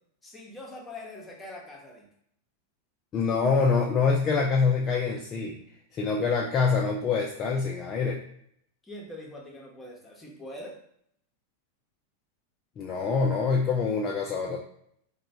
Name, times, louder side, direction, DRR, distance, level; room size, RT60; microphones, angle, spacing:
voice 1, 0.2-2.1 8.8-10.7, left 1 dB, 10° left, -2 dB, 0.7 m, -43 dB
voice 2, 3.1-5.6 5.9-8.2 12.8-14.6, left 5 dB, 30° left, -1 dB, 0.3 m, -25 dB
3.0 x 2.2 x 2.6 m, 0.69 s
figure-of-eight pair, 90°, 0 cm